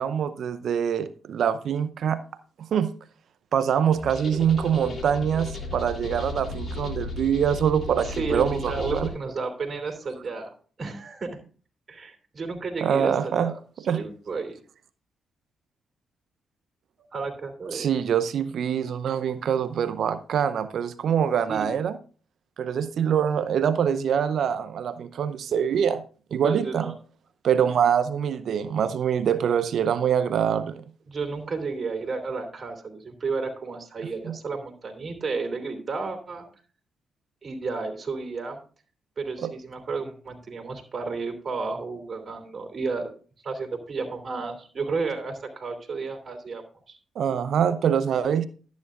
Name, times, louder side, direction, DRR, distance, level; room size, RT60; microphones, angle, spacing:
voice 1, 0.0-2.2 2.7-2.9 3.5-9.1 12.8-13.5 13.9-14.0 17.7-21.9 22.6-26.0 26.3-26.9 27.4-30.8 34.2-34.3 39.4-39.5 47.2-48.5, right 8 dB, 70° right, 13 dB, 0.6 m, -24 dB
sound 1, 3.9-9.1, left 2 dB, 50° left, 3.2 m, -35 dB
voice 2, 7.9-11.4 11.9-13.6 13.9-14.6 17.1-17.9 21.5-21.7 26.4-26.9 31.1-36.4 37.4-38.6 39.2-43.1 43.4-47.0, right 4 dB, 50° right, 4 dB, 2.9 m, -32 dB
12.0 x 9.3 x 2.5 m, 0.39 s
supercardioid pair, 55°, 0 cm